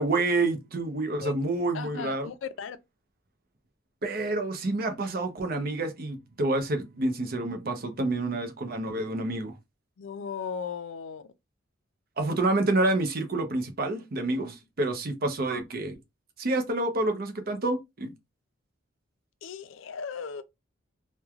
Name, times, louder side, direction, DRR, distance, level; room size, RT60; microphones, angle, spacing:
voice 1, 0.0-2.3 4.0-9.6 12.2-16.0 16.4-18.1, right 2 dB, 50° right, 0.6 m, -28 dB
voice 2, 1.7-2.8 10.0-11.3 19.4-20.4, left 6 dB, 70° left, 0.4 m, -36 dB
3.1 x 2.2 x 2.3 m
head